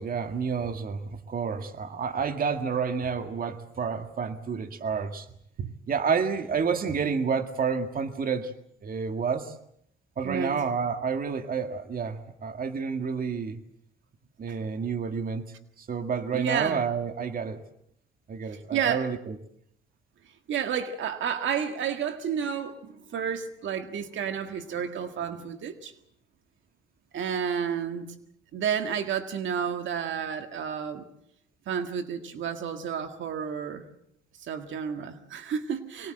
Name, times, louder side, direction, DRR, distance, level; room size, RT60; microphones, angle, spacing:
voice 1, 0.0-5.3 5.9-8.5 8.8-9.5 10.2-13.6 14.4-15.5 15.8-17.6 18.3-19.4, right 6 dB, 45° right, 1.9 m, -29 dB
voice 2, 10.2-10.6 16.3-16.8 18.5-19.1 20.5-25.9 27.1-28.2 28.5-31.0 31.7-33.9 34.4-36.1, right 7 dB, 70° right, 1.8 m, -31 dB
23.5 x 20.0 x 7.7 m
cardioid pair, 90°, 20 cm